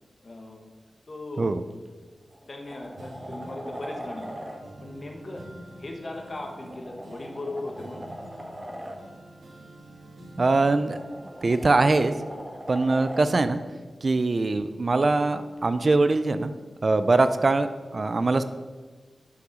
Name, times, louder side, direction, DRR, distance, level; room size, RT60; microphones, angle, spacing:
voice 1, 0.2-1.6 2.5-4.3 4.8-5.5 5.8-8.0, left 2 dB, 45° left, 2 dB, 1.4 m, -38 dB
sound 1, 1.7-1.9 2.3-4.6 6.2-9.0 10.5-13.3 15.6-15.7, equal, 20° right, 1.4 m, -40 dB
sound 2, 3.0-14.6 15.0-16.9 17.4-17.5, right 1 dB, 80° right, 2.1 m, -48 dB
voice 2, 10.4-11.0 11.4-12.1 12.7-13.6 14.0-16.5 16.8-18.4, right 3 dB, 50° right, 11 dB, 0.5 m, -22 dB
7.9 x 5.9 x 6.2 m, 1.4 s
wide cardioid pair, 80°, 0 cm